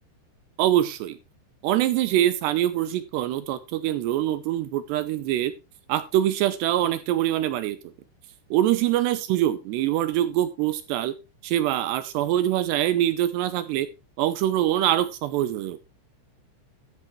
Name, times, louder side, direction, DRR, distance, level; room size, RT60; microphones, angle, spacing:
voice 1, 0.6-1.2 1.6-5.5 5.9-7.8 8.5-11.2 11.4-13.9 14.2-15.8, right 13 dB, 80° right, 13 dB, 2.5 m, -24 dB
13.5 x 8.4 x 3.1 m, 0.27 s
omnidirectional pair, 5.5 m